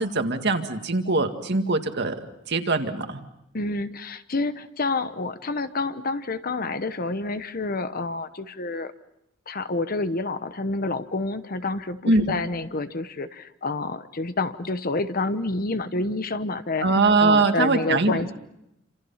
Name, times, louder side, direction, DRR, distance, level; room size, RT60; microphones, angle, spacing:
voice 1, 0.0-2.2 2.5-3.2 12.0-12.3 16.8-18.3, right 3 dB, 55° right, 6 dB, 2.0 m, -22 dB
voice 2, 3.5-8.9 9.5-16.9 17.2-18.3, left 3 dB, 45° left, 11 dB, 1.0 m, -28 dB
28.0 x 27.0 x 5.7 m, 0.83 s
head